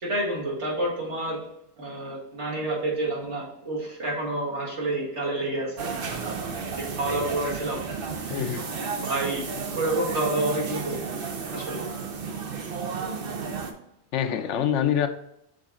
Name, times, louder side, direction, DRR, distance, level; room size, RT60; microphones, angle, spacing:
voice 1, 0.0-1.4 1.8-5.9 6.8-7.8 8.2-8.4 9.0-9.4 9.8-11.0 11.5-11.8, right 2 dB, 80° right, 2.2 m, -29 dB
sound 1, 5.8-13.7, right 5 dB, 55° right, 0.9 m, -33 dB
voice 2, 8.3-8.6 14.1-15.1, left 9 dB, 85° left, 0.9 m, -25 dB
6.5 x 4.0 x 3.7 m
omnidirectional pair, 1.2 m